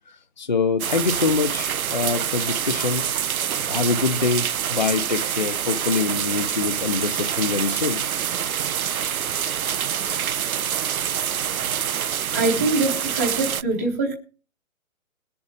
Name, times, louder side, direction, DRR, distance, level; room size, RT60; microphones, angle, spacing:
voice 1, 0.4-3.1 3.7-8.0 10.5-10.6, left 4 dB, 35° left, 0.7 m, -24 dB
sound 1, 0.8-13.6, right 9 dB, 85° right, 0.7 m, -26 dB
voice 2, 12.3-14.1, right 2 dB, 10° right, 1.0 m, -23 dB
21.0 x 7.1 x 5.0 m
hypercardioid pair, 175°, 42 cm